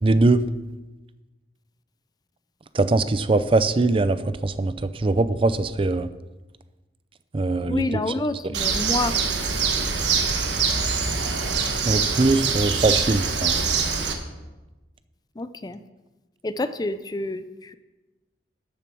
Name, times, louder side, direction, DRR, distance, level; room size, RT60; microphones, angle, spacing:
voice 1, 0.0-0.4 2.7-6.1 7.3-7.9 11.9-13.6, right 2 dB, 30° right, 13 dB, 0.5 m, -21 dB
voice 2, 7.7-9.1 15.4-15.8 16.4-17.8, left 2 dB, 25° left, 12 dB, 0.4 m, -28 dB
Bird, 8.5-14.1, right 5 dB, 85° right, 1.4 m, -24 dB
13.0 x 7.1 x 6.1 m, 1.1 s
head